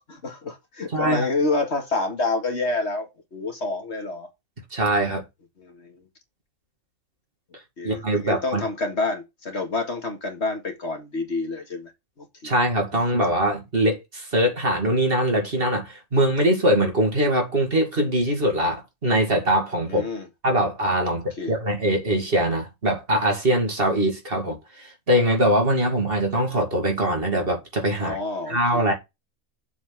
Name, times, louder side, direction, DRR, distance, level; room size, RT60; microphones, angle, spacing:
voice 1, 0.1-4.3 5.6-6.0 7.8-11.9 12.2-12.5 19.9-20.3 21.1-21.6 28.0-28.9, left 3 dB, 50° left, 2.2 m, -28 dB
voice 2, 0.9-1.3 4.7-5.2 7.8-8.6 12.4-20.0 20.4-28.2 28.5-28.9, right 1 dB, 40° right, 2.4 m, -22 dB
7.2 x 4.3 x 5.7 m
omnidirectional pair, 1.4 m